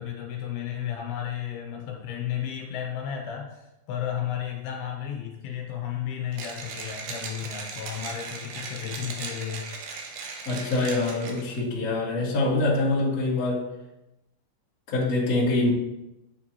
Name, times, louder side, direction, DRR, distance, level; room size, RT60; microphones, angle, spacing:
voice 1, 0.0-9.7, left 9 dB, 80° left, 1 dB, 2.8 m, -33 dB
Mechanisms, 6.3-11.6, right 4 dB, 75° right, 2.1 m, -38 dB
voice 2, 10.4-13.6 14.9-15.7, left 2 dB, 55° left, -7 dB, 0.9 m, -25 dB
9.3 x 3.8 x 3.0 m, 0.92 s
omnidirectional pair, 4.5 m